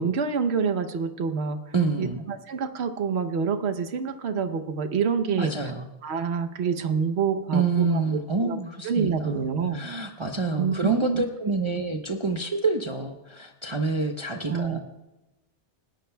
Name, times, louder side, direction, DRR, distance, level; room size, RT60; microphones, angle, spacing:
voice 1, 0.0-1.6 2.0-5.5 6.0-8.0 8.3-8.6 8.8-9.9 10.6-11.2 14.5-14.8, right 6 dB, 70° right, 9 dB, 1.1 m, -27 dB
voice 2, 1.7-2.2 5.4-5.9 7.5-9.5 9.7-14.8, right 3 dB, 30° right, 2 dB, 0.8 m, -27 dB
27.5 x 11.5 x 2.3 m, 1.0 s
omnidirectional pair, 1.2 m